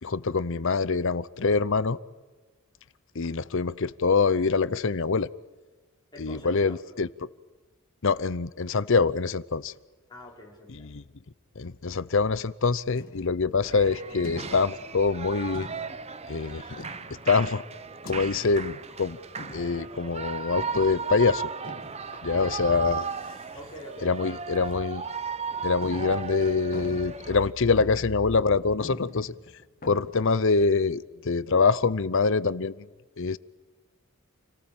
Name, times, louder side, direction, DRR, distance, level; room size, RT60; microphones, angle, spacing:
voice 1, 0.0-2.0 3.1-5.3 6.2-7.1 8.0-9.7 10.7-11.0 11.6-15.7 16.3-16.8 17.3-17.6 18.0-19.2 19.5-21.5 22.2-23.1 24.0-25.0 25.6-29.3 29.8-32.9 33.2-33.4, left 4 dB, 60° left, 18 dB, 0.7 m, -25 dB
voice 2, 6.1-6.8 10.1-10.9 22.3-22.6 23.5-24.4, left 1 dB, 20° left, -2 dB, 5.5 m, -45 dB
sound 1, 13.0-13.5 14.2-14.9 15.5-16.1 16.8-17.4 18.0-18.7 19.4-19.9 20.5-20.9 21.6-22.5 22.9-23.5 23.8-23.9 24.5-24.7 25.2-25.3 25.8-27.4 27.8-28.2 28.5-28.6 28.8-30.1, left 1 dB, 45° left, 2.3 m, -44 dB
Shout / Cheering, 13.6-27.5, right 5 dB, 30° right, 0.9 m, -36 dB
29.0 x 19.0 x 8.9 m, 1.3 s
head